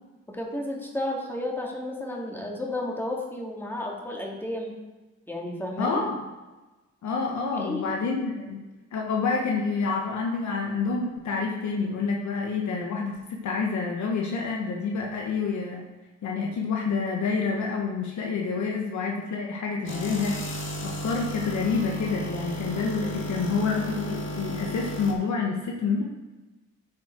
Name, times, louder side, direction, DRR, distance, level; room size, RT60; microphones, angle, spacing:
voice 1, 0.3-4.7 5.3-6.0 7.5-8.0, left 1 dB, 5° left, -1 dB, 2.3 m, -32 dB
voice 2, 5.8-6.2 7.0-8.6 8.9-15.8 16.2-20.3 20.8-26.0, left 4 dB, 70° left, -1 dB, 1.3 m, -28 dB
sound 1, 19.9-25.1, equal, 40° left, 2.0 m, -34 dB
9.5 x 6.3 x 4.5 m, 1.2 s
cardioid pair, 90°, 30 cm